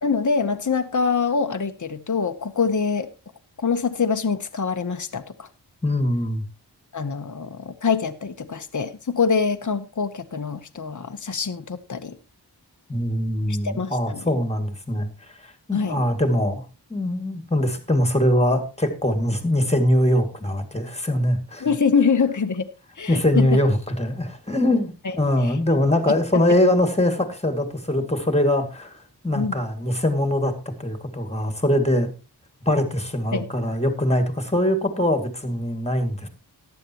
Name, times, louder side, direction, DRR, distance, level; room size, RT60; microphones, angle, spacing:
voice 1, 0.0-3.1 3.6-5.5 6.9-12.2 13.5-14.3 15.7-16.0 21.6-22.7 23.0-23.5 25.0-25.1 25.4-25.6 26.1-26.4 29.4-29.6 33.3-33.5, left 5 dB, 45° left, 7 dB, 0.9 m, -24 dB
voice 2, 5.8-6.4 12.9-15.1 15.4-16.6 16.9-21.7 23.1-29.0 29.2-30.5 30.8-32.1 32.7-36.3, left 1 dB, 15° left, 7 dB, 2.2 m, -22 dB
14.5 x 10.5 x 2.9 m, 0.30 s
wide cardioid pair, 65°, 41 cm